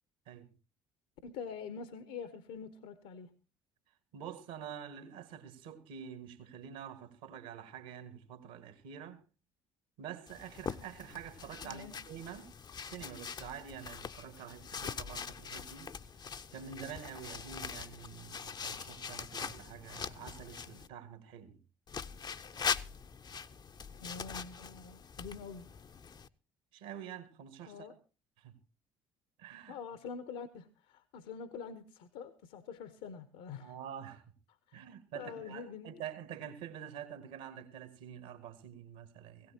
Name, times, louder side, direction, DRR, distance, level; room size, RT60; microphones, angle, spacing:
voice 1, 1.2-3.4 11.6-12.0 24.0-25.7 27.7-27.9 29.7-33.7 34.7-34.8 35.1-36.0, left 6 dB, 65° left, 1.0 m, -45 dB
voice 2, 4.1-9.2 10.0-12.5 12.8-15.9 16.5-21.6 26.7-27.9 28.4-28.6 29.4-29.8 33.6-34.2 34.7-39.5, right 9 dB, 65° right, 1.8 m, -47 dB
sound 1, 10.3-20.9 21.9-26.3, left 6 dB, 30° left, 0.6 m, -42 dB
19.0 x 16.5 x 2.8 m
figure-of-eight pair, 55°, 14 cm